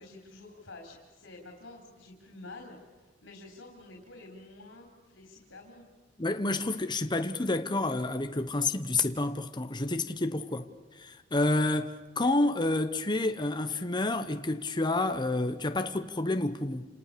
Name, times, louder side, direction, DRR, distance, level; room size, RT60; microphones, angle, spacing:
voice 1, 0.0-2.8 3.2-5.8, left 2 dB, 80° left, 4.1 m, -49 dB
voice 2, 6.2-10.7 10.9-16.8, left 2 dB, 25° left, 1.0 m, -29 dB
29.5 x 28.0 x 6.8 m
head